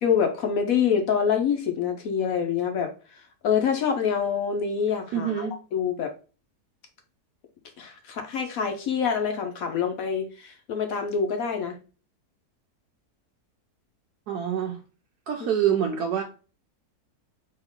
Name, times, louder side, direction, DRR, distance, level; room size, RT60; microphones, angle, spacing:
voice 1, 0.0-2.9 3.4-6.1 7.8-11.8, left 7 dB, 65° left, 5 dB, 1.1 m, -26 dB
voice 2, 5.1-5.6 14.3-14.8 15.3-16.2, right 9 dB, 75° right, 2 dB, 1.2 m, -26 dB
4.3 x 2.9 x 3.6 m, 0.35 s
omnidirectional pair, 1.7 m